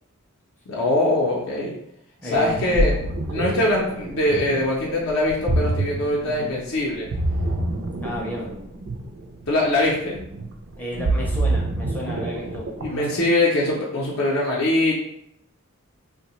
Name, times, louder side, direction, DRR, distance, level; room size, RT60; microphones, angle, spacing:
voice 1, 0.7-1.7 2.2-2.9 3.3-7.1 9.5-10.2 12.8-14.9, left 1 dB, 70° left, -4 dB, 0.5 m, -22 dB
voice 2, 2.2-2.8 6.2-6.6 8.0-8.5 10.8-13.2, left 1 dB, 10° left, -3 dB, 0.4 m, -33 dB
Ocean, 2.3-13.1, right 2 dB, 55° right, 0.3 m, -26 dB
2.6 x 2.1 x 2.9 m, 0.78 s
head